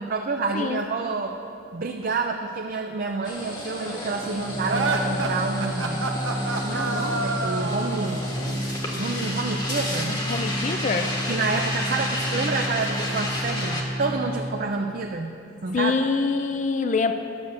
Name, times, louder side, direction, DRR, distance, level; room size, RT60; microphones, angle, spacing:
voice 1, 0.0-1.4 1.7-6.1 6.6-8.2 9.0-10.2 11.3-15.3 15.6-15.9, right 3 dB, 50° right, 3 dB, 0.5 m, -28 dB
sound 1, 3.2-13.8, left 1 dB, 25° left, 1.3 m, -32 dB
Organ, 4.0-14.8, equal, 5° right, 0.8 m, -31 dB
sound 2, 4.6-8.2, right 3 dB, 90° right, 1.0 m, -28 dB
voice 2, 10.1-11.1 15.7-17.1, left 4 dB, 40° left, 8 dB, 0.4 m, -25 dB
11.5 x 6.5 x 6.8 m, 2.6 s
head